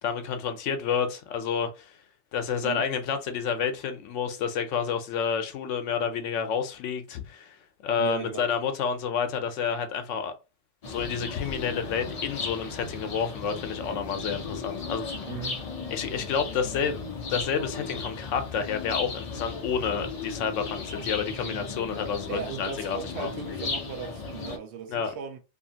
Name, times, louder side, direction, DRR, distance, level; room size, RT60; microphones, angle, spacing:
voice 1, 0.0-2.0 2.3-7.6 7.8-10.3 10.9-15.2 15.9-17.0 17.3-23.3 24.9-25.1, left 6 dB, 80° left, 0.9 m, -29 dB
voice 2, 8.0-8.5 15.3-15.6 22.3-25.4, right 7 dB, 70° right, 0.8 m, -37 dB
sound 1, 10.8-24.6, left 4 dB, 45° left, 0.5 m, -36 dB
2.8 x 2.5 x 2.7 m
omnidirectional pair, 1.2 m